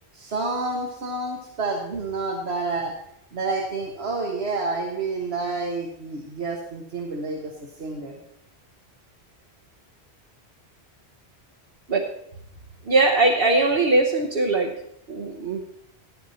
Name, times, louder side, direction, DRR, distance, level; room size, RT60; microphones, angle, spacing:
voice 1, 0.1-2.9 3.3-8.2, right 3 dB, 75° right, 1 dB, 1.7 m, -29 dB
voice 2, 12.9-14.7 15.1-15.6, right 2 dB, 60° right, 0 dB, 1.4 m, -20 dB
16.5 x 9.1 x 4.2 m, 0.78 s
omnidirectional pair, 1.1 m